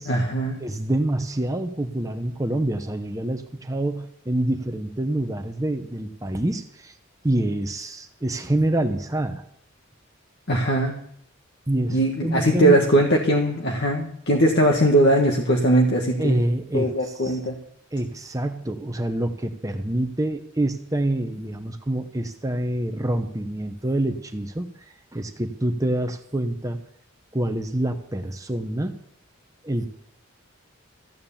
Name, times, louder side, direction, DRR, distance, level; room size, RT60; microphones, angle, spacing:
voice 1, 0.1-0.6 10.5-10.9 11.9-16.4 16.7-17.6, right 1 dB, 55° left, 1 dB, 1.6 m, -20 dB
voice 2, 0.6-6.9 7.2-9.4 11.7-12.8 16.2-17.4 17.9-24.7 25.1-26.8 27.3-29.0 29.6-29.9, right 1 dB, 15° right, 6 dB, 0.8 m, -26 dB
15.0 x 9.5 x 7.1 m, 0.69 s
head